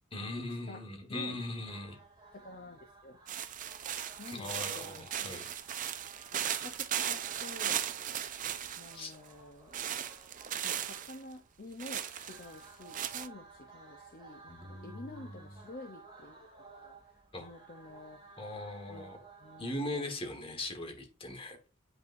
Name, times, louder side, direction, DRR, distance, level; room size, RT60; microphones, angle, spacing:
voice 1, 0.1-2.0 4.3-5.5 8.9-9.1 14.5-15.6 17.3-17.5 18.4-19.2 19.6-21.6, left 2 dB, 25° left, 1.4 m, -40 dB
sound 1, 1.6-19.8, right 4 dB, 20° right, 2.5 m, -56 dB
voice 2, 2.3-3.2 4.1-5.4 6.3-7.9 8.7-9.8 10.6-18.2 18.9-19.0 19.4-20.1, left 2 dB, 45° left, 0.6 m, -49 dB
sound 2, 3.3-9.2 9.7-11.2 11.8-13.3, right 10 dB, 40° right, 0.4 m, -37 dB
8.5 x 5.5 x 2.6 m
head